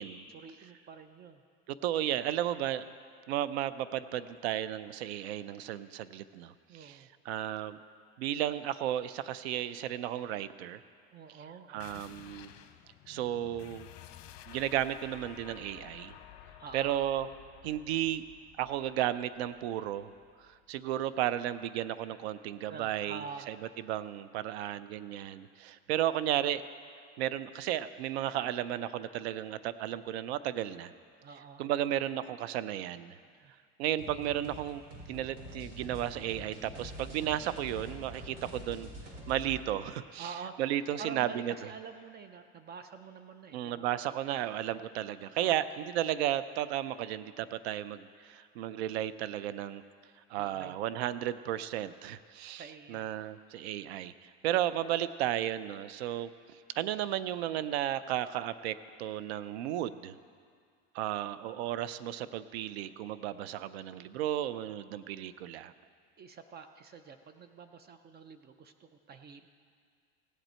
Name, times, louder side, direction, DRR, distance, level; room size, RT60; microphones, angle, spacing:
voice 1, 0.3-1.4 6.7-7.1 11.1-12.0 16.6-17.0 22.7-23.5 31.2-31.6 33.4-33.5 40.2-40.6 41.0-44.1 45.4-45.7 50.4-50.7 52.6-53.1 66.2-69.5, right 5 dB, 30° right, 9 dB, 0.6 m, -47 dB
voice 2, 1.7-2.8 3.3-7.8 8.2-10.8 11.7-12.5 13.1-13.9 14.5-16.1 16.7-17.3 17.6-18.2 18.6-20.1 20.4-23.6 23.9-26.6 27.2-30.9 31.6-33.2 33.8-34.8 35.1-38.9 39.3-41.5 43.5-49.8 50.3-56.3 56.8-60.2 60.9-65.7, right 12 dB, 80° right, 15 dB, 0.6 m, -34 dB
sound 1, 11.8-21.0, left 11 dB, 55° left, 0.8 m, -53 dB
sound 2, 34.0-39.6, equal, 50° right, 3.5 m, -46 dB
17.0 x 8.1 x 4.4 m, 2.1 s
supercardioid pair, 105°, 31 cm